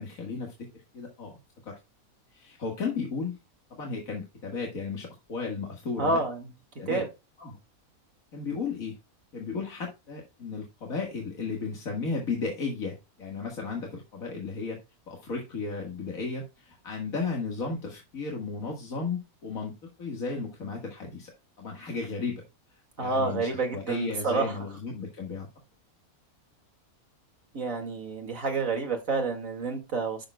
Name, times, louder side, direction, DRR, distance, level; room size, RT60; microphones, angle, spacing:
voice 1, 0.0-1.4 1.6-1.8 2.3-3.4 3.7-6.2 6.8-7.1 7.4-7.6 8.3-9.0 9.3-14.8 15.1-22.4 22.7-25.5, left 4 dB, 70° left, 2.1 m, -34 dB
voice 2, 6.0-6.4 6.9-7.0 23.0-24.5 27.5-30.2, right 3 dB, 65° right, 2.5 m, -29 dB
11.5 x 6.9 x 2.2 m
omnidirectional pair, 1.5 m